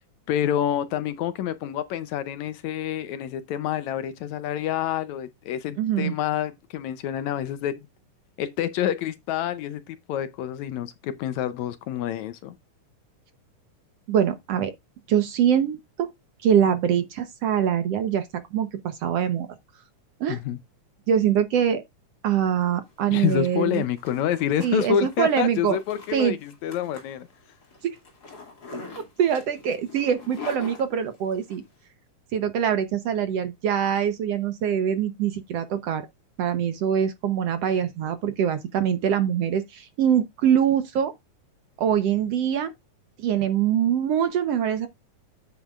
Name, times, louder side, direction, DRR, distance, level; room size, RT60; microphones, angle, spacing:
voice 1, 0.3-7.8 8.4-12.5 20.3-20.6 23.1-27.3, left 10 dB, 75° left, 1.9 m, -28 dB
voice 2, 5.8-6.1 14.1-14.7 15.1-16.1 16.4-19.5 20.2-20.4 21.1-21.8 22.2-23.8 24.6-25.8 26.1-26.3 29.2-31.6 32.3-36.1 36.4-41.1 41.8-42.7 43.2-44.9, right 9 dB, 65° right, 1.8 m, -23 dB
Zipper (clothing), 22.9-31.6, left 4 dB, 30° left, 2.9 m, -44 dB
9.2 x 8.5 x 2.4 m
omnidirectional pair, 3.6 m